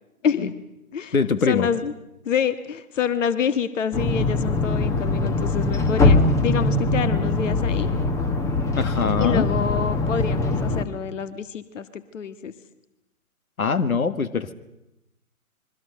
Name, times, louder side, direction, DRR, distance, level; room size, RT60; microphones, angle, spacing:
voice 1, 0.2-0.5 0.9-1.1 1.5-1.9 2.3-7.9 9.2-12.5, left 7 dB, 60° left, 12 dB, 1.7 m, -27 dB
voice 2, 1.1-1.7 8.8-9.5 13.6-14.5, left 5 dB, 75° left, 13 dB, 1.8 m, -22 dB
sound 1, 3.9-10.9, left 2 dB, 5° left, 1.0 m, -22 dB
26.5 x 23.5 x 6.7 m, 0.88 s
figure-of-eight pair, 135°, 43 cm